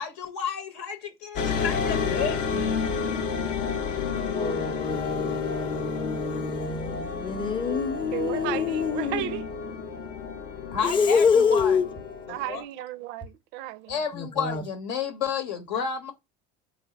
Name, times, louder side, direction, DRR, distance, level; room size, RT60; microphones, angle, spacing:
voice 1, 0.0-2.8 10.7-11.8 12.5-12.6 13.9-16.1, left 6 dB, 75° left, 1.0 m, -31 dB
sound 1, 1.4-12.6, left 5 dB, 60° left, 0.7 m, -30 dB
voice 2, 4.3-9.3 10.8-11.8 14.1-14.6, left 6 dB, 25° left, 0.7 m, -26 dB
voice 3, 8.1-9.5 12.3-14.0, right 14 dB, 60° right, 0.4 m, -34 dB
3.3 x 2.0 x 3.9 m
supercardioid pair, 125°, 21 cm